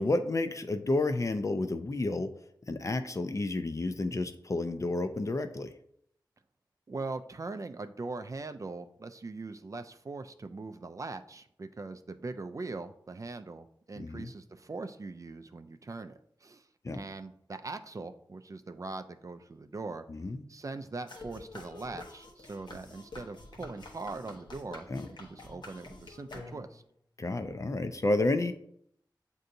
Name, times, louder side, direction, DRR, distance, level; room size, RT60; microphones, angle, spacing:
voice 1, 0.0-2.3 2.7-5.7 14.0-14.3 16.8-17.0 20.1-20.4 24.9-25.1 27.2-28.5, left 2 dB, 40° left, 8 dB, 0.4 m, -30 dB
voice 2, 6.9-20.1 20.5-26.8, right 3 dB, 45° right, 9 dB, 0.3 m, -41 dB
sound 1, 21.1-26.9, left 2 dB, 65° left, 0.8 m, -48 dB
7.5 x 2.7 x 2.6 m, 0.71 s
cardioid pair, 45°, 8 cm